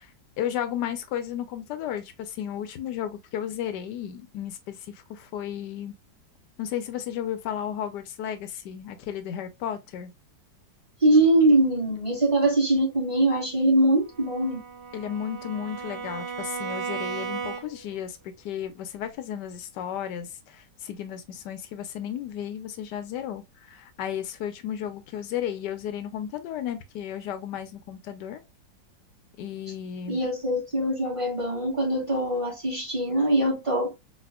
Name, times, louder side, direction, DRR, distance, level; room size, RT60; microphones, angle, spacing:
voice 1, 0.4-5.9 6.6-10.1 14.9-28.4 29.4-30.2, left 10 dB, 75° left, 1.1 m, -34 dB
voice 2, 11.0-14.6 30.1-33.9, right 1 dB, 20° right, 1.3 m, -22 dB
Bowed string instrument, 14.1-18.0, right 5 dB, 80° right, 1.4 m, -35 dB
4.2 x 2.4 x 2.3 m
omnidirectional pair, 1.9 m